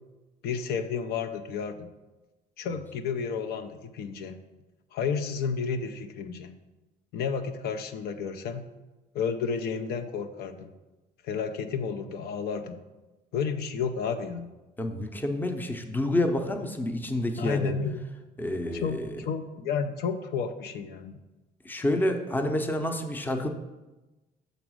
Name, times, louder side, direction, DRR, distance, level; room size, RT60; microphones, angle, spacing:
voice 1, 0.4-1.9 2.6-4.4 4.9-6.5 7.1-8.6 9.1-10.7 11.2-12.8 13.3-14.5 17.4-18.0 18.7-21.2, left 6 dB, 70° left, 8 dB, 0.6 m, -31 dB
voice 2, 14.8-17.7 18.4-19.2 21.6-23.5, left 1 dB, 10° left, 6 dB, 0.7 m, -28 dB
6.1 x 4.0 x 6.2 m, 1.1 s
cardioid pair, 110°, 17 cm